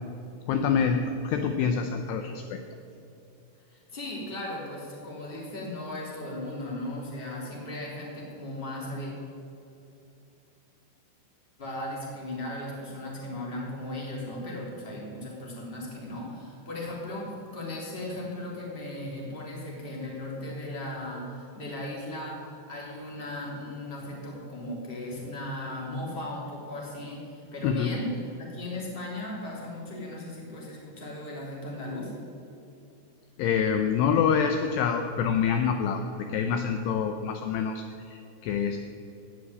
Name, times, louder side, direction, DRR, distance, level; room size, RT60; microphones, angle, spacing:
voice 1, 0.5-2.6 27.6-27.9 33.4-38.8, left 7 dB, 85° left, 6 dB, 2.4 m, -26 dB
voice 2, 3.7-9.1 11.6-32.1, left 1 dB, 15° left, -4 dB, 2.6 m, -37 dB
17.0 x 6.2 x 9.6 m, 2.7 s
omnidirectional pair, 5.5 m